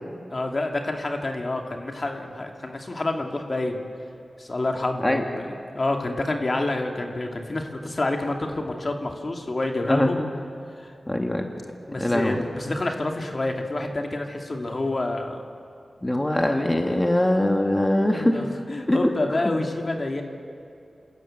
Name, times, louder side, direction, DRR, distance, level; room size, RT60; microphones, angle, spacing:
voice 1, 0.3-3.8 4.4-5.5 5.7-10.2 10.8-10.9 11.9-15.4 18.0-20.2, left 2 dB, 50° left, 3 dB, 2.6 m, -28 dB
voice 2, 9.9-10.3 11.1-11.5 12.0-12.4 16.0-18.4 18.9-19.1, left 1 dB, 20° left, 3 dB, 2.1 m, -22 dB
28.0 x 14.0 x 9.2 m, 2.4 s
cardioid pair, 45°, 0 cm